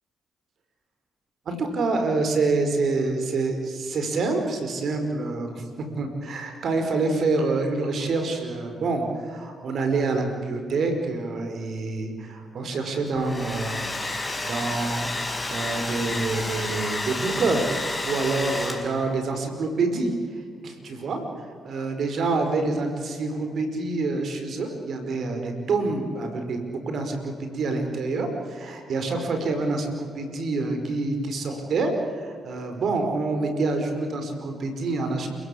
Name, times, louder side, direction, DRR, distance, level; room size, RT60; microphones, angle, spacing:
voice 1, 1.5-5.6 6.0-13.9 14.5-15.1 15.5-20.1 20.6-21.2 21.6-31.9 32.2-35.3, right 3 dB, 65° right, 5 dB, 5.0 m, -27 dB
Domestic sounds home sounds, 13.1-19.1, left 2 dB, 20° left, 5.0 m, -31 dB
29.0 x 17.0 x 8.6 m, 2.1 s
hypercardioid pair, 45°, 0 cm